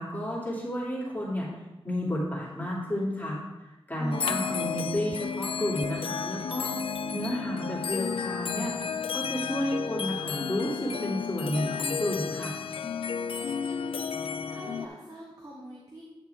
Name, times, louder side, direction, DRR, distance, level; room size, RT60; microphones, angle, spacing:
voice 1, 0.0-1.5 1.8-3.4 3.9-6.8 7.1-12.6, equal, 15° left, -7 dB, 2.7 m, -31 dB
voice 2, 4.0-4.7 13.4-14.0 14.5-16.0, right 1 dB, 40° right, -5 dB, 1.6 m, -41 dB
sound 1, 4.1-14.9, left 6 dB, 70° left, 0.4 m, -32 dB
9.7 x 6.5 x 3.5 m, 1.0 s
wide cardioid pair, 80°, 10 cm